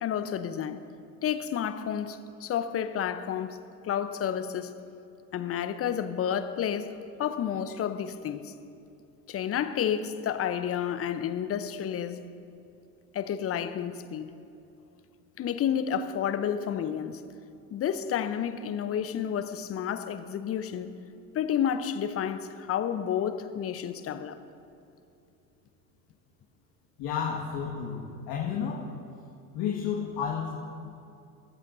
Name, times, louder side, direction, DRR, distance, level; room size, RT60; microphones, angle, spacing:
voice 1, 0.0-0.8 1.2-3.6 3.8-4.7 5.3-8.6 9.3-12.3 13.1-14.3 15.4-17.2 17.7-20.9 21.3-24.4, left 9 dB, 30° left, 0.9 m, -30 dB
voice 2, 27.0-28.9 29.5-30.5, left 7 dB, 45° left, 1.9 m, -31 dB
28.0 x 14.0 x 2.7 m
figure-of-eight pair, 75°, 48 cm